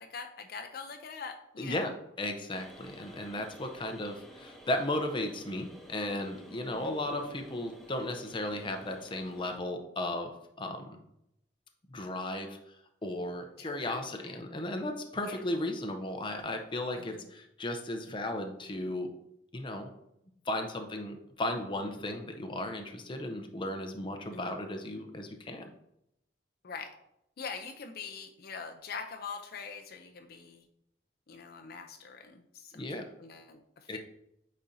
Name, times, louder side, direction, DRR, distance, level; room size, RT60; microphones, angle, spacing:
voice 1, 0.0-1.9 6.7-7.0 13.6-14.3 15.2-15.4 16.9-17.3 24.3-24.7 26.6-27.0 27.4-30.7 31.3-32.9 33.2-34.0, left 5 dB, 60° left, 5 dB, 0.5 m, -44 dB
voice 2, 1.6-11.0 11.9-12.6 13.0-19.1 19.5-19.9 20.5-25.7 32.7-33.0 33.9-34.0, left 1 dB, 30° left, 5 dB, 0.7 m, -35 dB
sound 1, 2.5-9.6, equal, ahead, 0.8 m, -52 dB
8.6 x 4.3 x 2.7 m, 0.79 s
head